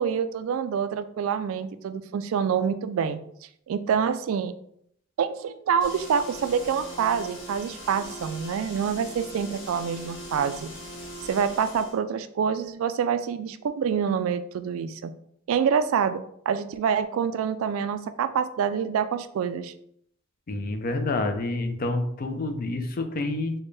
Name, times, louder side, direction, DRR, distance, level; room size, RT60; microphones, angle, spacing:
voice 1, 0.0-3.2 3.7-4.5 5.2-10.7 11.2-15.1 15.5-19.7, right 7 dB, 75° right, 12 dB, 0.3 m, -26 dB
sound 1, 5.8-12.0, equal, 60° left, 0.9 m, -41 dB
voice 2, 20.5-23.5, left 2 dB, 45° left, 6 dB, 0.5 m, -28 dB
4.3 x 2.2 x 3.1 m, 0.69 s
head